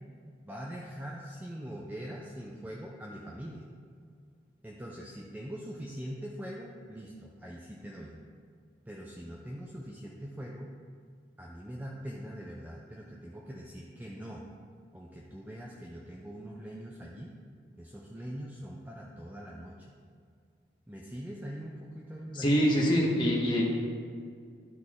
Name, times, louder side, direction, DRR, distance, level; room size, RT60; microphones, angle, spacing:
voice 1, 0.4-3.6 4.6-8.2 8.9-10.7 11.4-14.4 14.9-17.3 17.8-19.8 20.9-22.7, equal, 10° right, -2 dB, 0.5 m, -42 dB
voice 2, 22.3-23.6, equal, 25° left, -4 dB, 1.2 m, -25 dB
12.0 x 4.0 x 3.7 m, 2.2 s
head